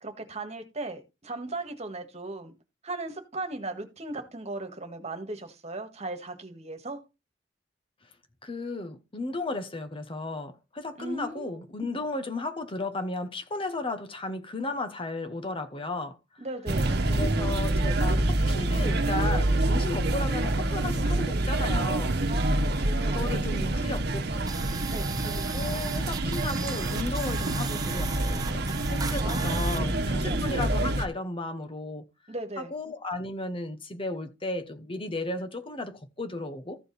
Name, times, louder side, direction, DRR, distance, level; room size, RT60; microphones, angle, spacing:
voice 1, 0.0-2.5 2.8-7.0 11.0-12.0 16.4-17.0 22.3-23.9 24.9-25.1 29.2-30.5 32.3-32.7, right 2 dB, 35° right, 1.8 m, -38 dB
voice 2, 8.4-16.4 17.1-22.2 23.0-24.2 25.2-32.0 32.6-36.8, left 2 dB, 30° left, 1.0 m, -34 dB
sound 1, 16.7-31.0, right 1 dB, 60° right, 1.2 m, -27 dB
sound 2, 24.5-29.8, right 6 dB, 20° right, 0.6 m, -38 dB
14.5 x 4.9 x 4.1 m
head